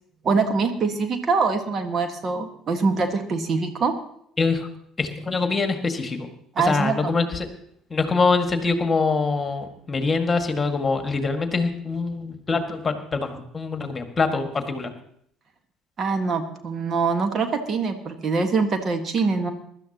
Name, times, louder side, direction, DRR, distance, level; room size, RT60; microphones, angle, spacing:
voice 1, 0.2-3.9 6.5-7.1 16.0-19.5, right 4 dB, 40° right, 7 dB, 1.6 m, -24 dB
voice 2, 4.4-4.7 5.0-6.3 6.6-7.5 7.9-14.9, left 4 dB, 25° left, 6 dB, 1.9 m, -24 dB
23.0 x 12.0 x 2.9 m, 0.68 s
figure-of-eight pair, 55°, 0 cm